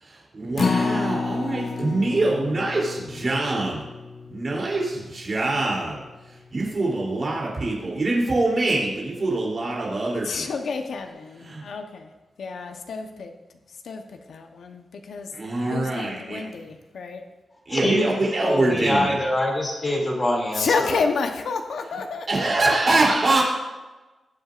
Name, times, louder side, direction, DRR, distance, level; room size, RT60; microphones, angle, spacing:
voice 1, 0.0-3.8 4.3-6.0 6.5-10.5 11.5-11.6 15.3-16.5 17.7-19.2 22.3-23.4, right 2 dB, 35° right, -4 dB, 3.2 m, -24 dB
Acoustic guitar, 0.6-6.9 7.3-7.4 7.8-7.9, left 4 dB, 40° left, 0.7 m, -30 dB
voice 2, 10.2-12.0 12.4-13.3 13.8-15.3 15.7-17.2 20.5-22.3, left 4 dB, 70° left, 5 dB, 0.9 m, -29 dB
voice 3, 17.7-21.0, left 1 dB, 25° left, -2 dB, 2.6 m, -25 dB
19.0 x 7.9 x 2.5 m, 1.2 s
wide cardioid pair, 165°, 0 cm